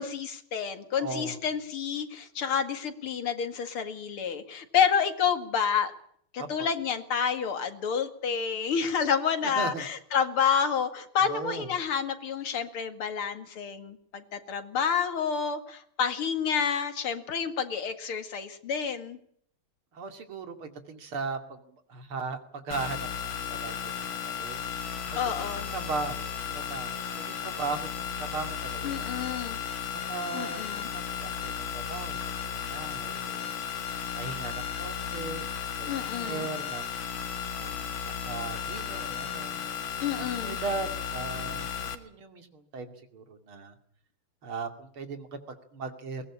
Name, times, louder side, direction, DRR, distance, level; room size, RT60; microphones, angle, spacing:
voice 1, 0.0-5.9 6.3-19.2 25.2-25.7 28.8-29.6 30.3-30.9 35.9-36.5 40.0-40.6, left 7 dB, 80° left, 8 dB, 2.9 m, -29 dB
voice 2, 1.0-1.4 6.4-6.7 9.6-9.9 11.2-11.7 19.9-24.6 25.4-27.9 28.2-29.1 30.1-30.6 30.9-33.5 34.2-35.9 36.2-37.1 37.5-38.0 38.2-39.6 40.2-43.7 44.4-46.2, right 4 dB, 75° right, 7 dB, 3.4 m, -38 dB
sound 1, 22.7-42.0, left 7 dB, 65° left, 2.4 m, -35 dB
22.5 x 19.0 x 8.7 m, 0.66 s
omnidirectional pair, 2.4 m